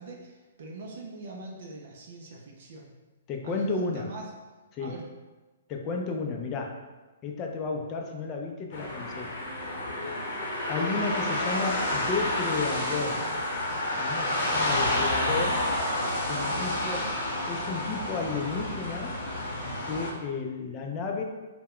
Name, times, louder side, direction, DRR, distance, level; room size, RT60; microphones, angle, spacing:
voice 1, 0.0-3.0 3.4-4.3 4.8-5.0 16.3-17.2, right 3 dB, 60° right, 0 dB, 0.4 m, -42 dB
voice 2, 3.3-4.1 4.7-5.0 5.7-6.8 7.2-9.4 10.7-13.3 14.0-15.6 16.3-17.1 17.5-19.2 19.8-21.2, left 4 dB, 30° left, 1 dB, 0.4 m, -32 dB
sound 1, 8.7-20.1, left 1 dB, 50° left, 0.8 m, -29 dB
2.2 x 2.0 x 3.6 m, 1.2 s
hypercardioid pair, 130°, 0 cm